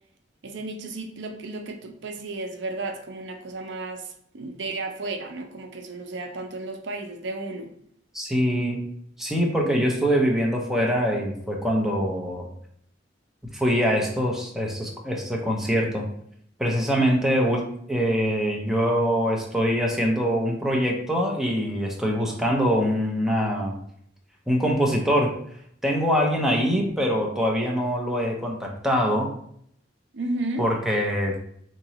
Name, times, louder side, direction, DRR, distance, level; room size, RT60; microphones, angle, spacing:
voice 1, 0.4-7.7 30.1-30.7, right 2 dB, 70° right, 5 dB, 0.5 m, -33 dB
voice 2, 8.1-8.8 9.2-12.4 13.5-16.0 16.6-17.6 17.9-23.8 24.5-25.3 25.8-29.3 30.6-31.4, equal, ahead, -1 dB, 0.6 m, -23 dB
3.6 x 3.0 x 2.9 m, 0.67 s
head